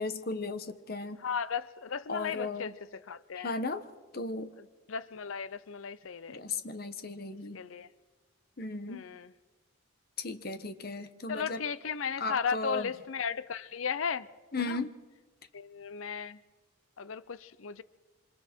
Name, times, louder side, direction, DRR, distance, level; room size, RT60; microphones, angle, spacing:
voice 1, 0.0-1.2 2.1-2.7 3.4-3.8 4.1-4.5 6.3-7.6 8.6-9.0 10.2-11.6 12.2-12.9 14.5-14.9, left 3 dB, 50° left, 1.2 m, -35 dB
voice 2, 1.2-3.6 4.6-6.4 7.5-7.9 8.9-9.3 11.3-14.3 14.6-14.8 15.5-16.4 17.0-17.8, left 6 dB, 80° left, 0.6 m, -36 dB
27.0 x 25.5 x 4.5 m
head